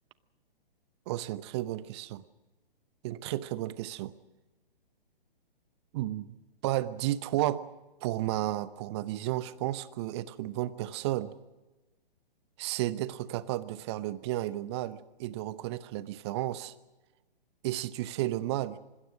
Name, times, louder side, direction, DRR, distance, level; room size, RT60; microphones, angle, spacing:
voice 1, 1.1-2.2 3.0-4.1 5.9-6.4 6.6-7.6 8.0-11.3 12.6-16.7 17.6-18.8, right 15 dB, 30° right, 16 dB, 0.9 m, -33 dB
26.0 x 20.5 x 6.4 m, 1.1 s
figure-of-eight pair, 125°, 29 cm